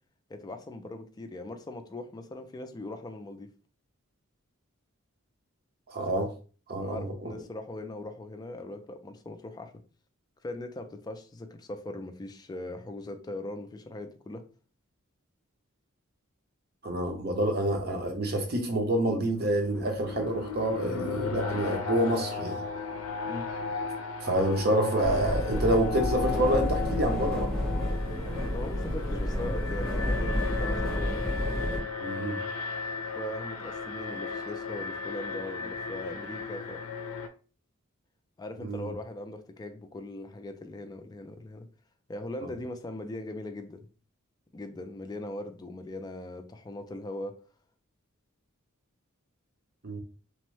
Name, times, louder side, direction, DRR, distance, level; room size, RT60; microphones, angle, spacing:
voice 1, 0.3-3.5 6.8-9.7 10.4-14.4 23.3-23.5 28.5-31.1 33.1-36.8 38.4-41.7 42.1-43.9 44.5-47.4, left 2 dB, 20° left, 0.3 m, -40 dB
voice 2, 5.9-6.3 6.7-7.3 16.8-22.6 24.2-27.5 32.0-32.4 38.6-38.9 42.4-42.5 49.8-50.0, right 1 dB, 50° right, 0.7 m, -28 dB
Alarm, 19.4-37.3, left 5 dB, 85° left, 0.4 m, -36 dB
sound 1, 25.0-31.8, equal, 70° right, 1.5 m, -30 dB
3.0 x 2.1 x 3.1 m
head